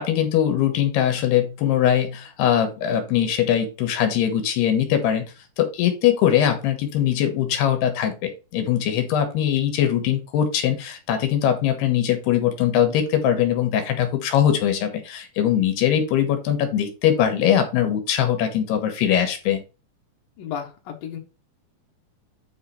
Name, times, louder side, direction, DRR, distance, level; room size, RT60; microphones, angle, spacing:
voice 1, 0.0-5.3 5.6-19.6, left 10 dB, 85° left, 6 dB, 3.4 m, -21 dB
voice 2, 20.4-21.2, left 8 dB, 65° left, 1 dB, 3.2 m, -33 dB
9.1 x 4.3 x 4.6 m, 0.31 s
omnidirectional pair, 4.5 m